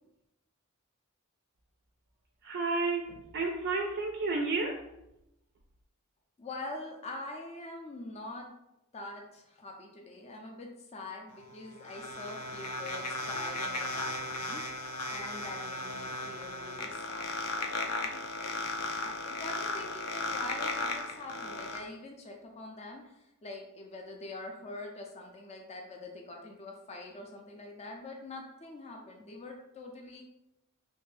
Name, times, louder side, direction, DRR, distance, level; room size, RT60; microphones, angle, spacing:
voice 1, 2.4-4.8, right 3 dB, 50° right, 1 dB, 0.4 m, -31 dB
voice 2, 6.4-8.5 8.9-18.5 19.0-30.2, left 2 dB, 30° left, 1 dB, 0.4 m, -44 dB
alien chatting, 11.3-21.8, left 2 dB, 85° left, 0.6 m, -36 dB
3.2 x 2.6 x 3.3 m, 0.88 s
head